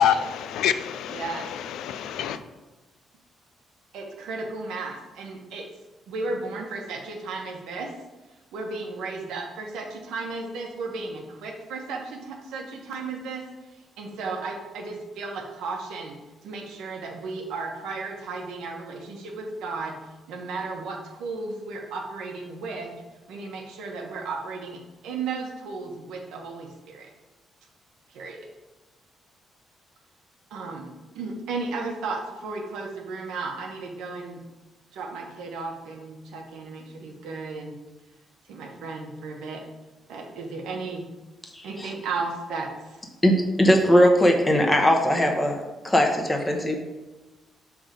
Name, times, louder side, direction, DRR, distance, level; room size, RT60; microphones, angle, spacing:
voice 1, 0.0-2.4, left 9 dB, 85° left, 11 dB, 0.4 m, -26 dB
voice 2, 1.1-1.4 3.9-5.6 6.1-7.9 8.5-13.4 14.0-16.1 16.4-19.9 20.3-22.9 23.3-24.8 25.0-27.1 28.1-28.4 30.5-30.9 31.1-34.4 34.9-37.7 38.5-39.6 40.1-41.0 41.6-42.7 45.1-45.3, right 3 dB, 85° right, 1 dB, 1.1 m, -34 dB
voice 3, 41.5-41.9 43.2-45.5 45.8-46.8, equal, 15° left, 2 dB, 1.0 m, -20 dB
6.1 x 3.5 x 5.1 m, 1.1 s
cardioid pair, 90°, 0 cm